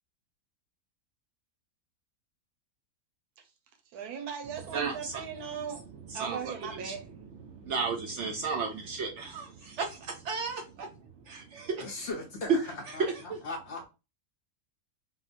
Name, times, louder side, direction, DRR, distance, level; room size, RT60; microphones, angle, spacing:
voice 1, 3.9-7.0, right 7 dB, 85° right, 1.2 m, -38 dB
voice 2, 4.7-5.2 5.5-12.1 12.9-13.4, right 4 dB, 65° right, 0.7 m, -35 dB
voice 3, 11.8-13.0 13.4-13.9, left 2 dB, 65° left, 0.7 m, -38 dB
3.7 x 2.1 x 2.4 m
omnidirectional pair, 1.6 m